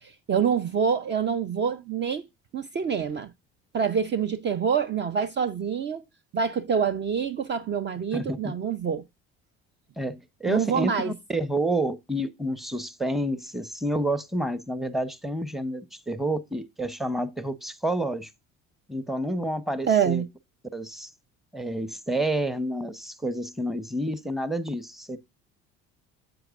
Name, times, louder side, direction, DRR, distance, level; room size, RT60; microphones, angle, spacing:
voice 1, 0.0-2.2 2.5-3.3 3.7-6.0 6.3-9.0 10.4-11.1 19.9-20.3, right 7 dB, 35° right, 0.6 m, -26 dB
voice 2, 8.1-8.5 10.0-18.3 18.9-20.2 20.7-21.1 21.5-25.2, right 1 dB, ahead, 0.9 m, -29 dB
7.8 x 7.8 x 2.4 m
supercardioid pair, 75°, 31 cm